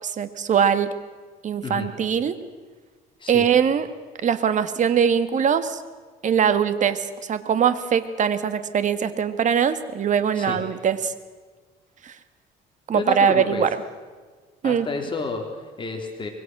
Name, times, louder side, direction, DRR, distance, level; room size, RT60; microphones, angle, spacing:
voice 1, 0.0-0.9 1.4-2.3 3.3-3.9 4.2-5.8 6.2-7.0 7.3-11.1 12.0-12.1 12.9-13.7 14.6-14.9, right 7 dB, 45° right, 11 dB, 1.9 m, -21 dB
voice 2, 12.9-13.7 14.6-16.3, left 4 dB, 30° left, 3 dB, 3.5 m, -30 dB
25.5 x 22.5 x 6.2 m, 1.4 s
cardioid pair, 110°, 17 cm